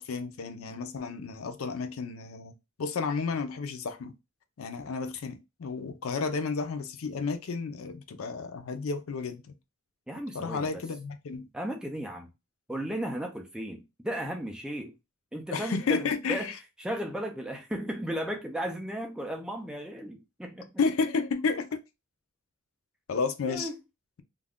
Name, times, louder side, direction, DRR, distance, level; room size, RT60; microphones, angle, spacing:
voice 1, 0.0-2.5 2.8-4.1 4.6-9.4 10.3-11.5 15.5-16.5 20.8-21.8 23.1-23.7, left 4 dB, 75° left, 0.4 m, -31 dB
voice 2, 10.1-10.8 11.5-12.3 12.7-14.9 15.3-20.7 23.5-23.8, right 1 dB, 5° right, 0.4 m, -35 dB
2.4 x 2.1 x 3.5 m
head